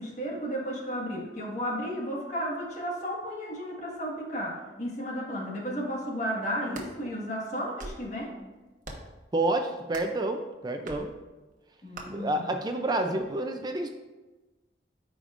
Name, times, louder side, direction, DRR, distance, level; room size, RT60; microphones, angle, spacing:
voice 1, 0.0-8.3 11.8-12.4, equal, 45° left, -1 dB, 1.6 m, -33 dB
sound 1, 6.5-6.9 7.6-8.1 8.8-9.2 9.9-10.2 10.9-11.0 11.9-12.1, right 2 dB, 50° right, 1.2 m, -42 dB
voice 2, 9.3-11.1 12.1-13.9, right 2 dB, 25° right, 5 dB, 0.4 m, -29 dB
14.0 x 5.0 x 2.5 m, 1.2 s
head